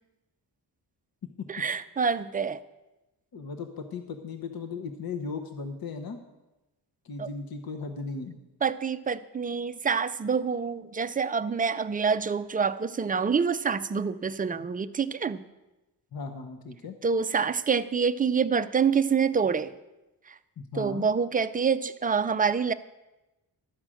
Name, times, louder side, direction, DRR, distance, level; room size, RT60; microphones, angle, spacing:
voice 1, 1.5-2.6 7.2-7.3 8.6-15.4 17.0-19.7 20.3-20.4 20.8-22.7, right 6 dB, 20° right, 12 dB, 0.3 m, -26 dB
voice 2, 3.3-6.2 7.0-8.4 16.1-17.0 20.6-21.1, left 4 dB, 55° left, 6 dB, 0.9 m, -37 dB
12.5 x 4.9 x 7.6 m, 1.0 s
wide cardioid pair, 115°, 42 cm